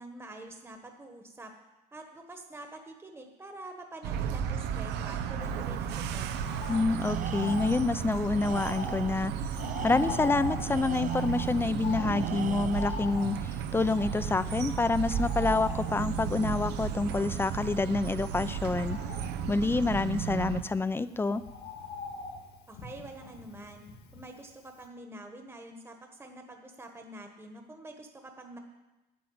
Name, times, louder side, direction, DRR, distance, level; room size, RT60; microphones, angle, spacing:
voice 1, 0.0-1.5 1.9-6.7 22.7-23.8 24.1-28.6, right 2 dB, 15° right, 4 dB, 1.3 m, -46 dB
sound 1, 4.0-20.6, right 8 dB, 90° right, 0.9 m, -34 dB
Bird, 5.4-24.5 24.8-24.9, left 4 dB, 70° left, 2.1 m, -43 dB
voice 2, 6.7-9.3 9.8-19.0 19.5-21.4, left 3 dB, 15° left, 14 dB, 0.5 m, -28 dB
Tools, 7.0-7.9 8.4-9.2 9.6-11.5 12.2-13.1, right 9 dB, 50° right, 0.7 m, -42 dB
9.4 x 8.8 x 8.6 m, 1.1 s
cardioid pair, 110°, 17 cm